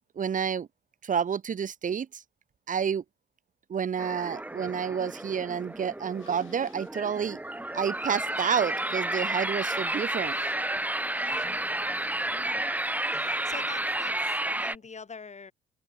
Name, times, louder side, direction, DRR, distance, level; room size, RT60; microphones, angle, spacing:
voice 1, 0.1-0.7 1.0-2.2 2.7-3.0 3.7-7.4 7.7-10.4, right 7 dB, 40° right, 0.9 m, -29 dB
sound 1, 4.0-14.8, right 1 dB, 10° right, 1.4 m, -31 dB
sound 2, 5.6-14.5, left 12 dB, 75° left, 7.0 m, -60 dB
voice 2, 11.1-11.7 12.3-12.7 13.1-15.5, left 5 dB, 35° left, 7.1 m, -46 dB
open air
cardioid pair, 90°, 20 cm